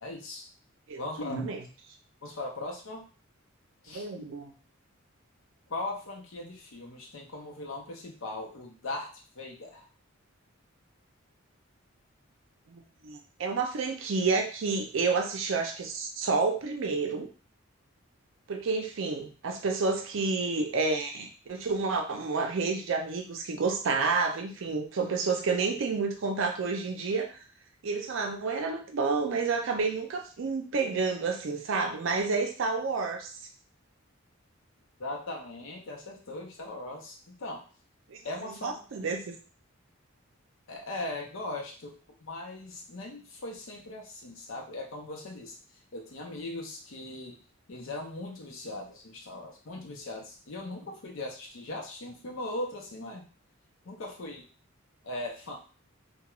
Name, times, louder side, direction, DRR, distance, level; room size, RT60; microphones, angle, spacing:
voice 1, 0.0-0.4 1.0-1.6 2.2-3.0 3.8-4.3 5.7-9.1 9.4-9.9 35.0-37.7 38.2-38.8 40.7-41.9 42.2-45.6 45.9-47.4 47.7-53.2 53.8-54.5 55.0-55.6, left 2 dB, 70° left, 0 dB, 0.7 m, -39 dB
voice 2, 3.9-4.5 12.7-17.3 18.5-27.4 27.8-33.3 38.1-38.2 38.6-39.4, right 4 dB, 65° right, 4 dB, 0.5 m, -30 dB
2.3 x 2.2 x 3.0 m, 0.37 s
head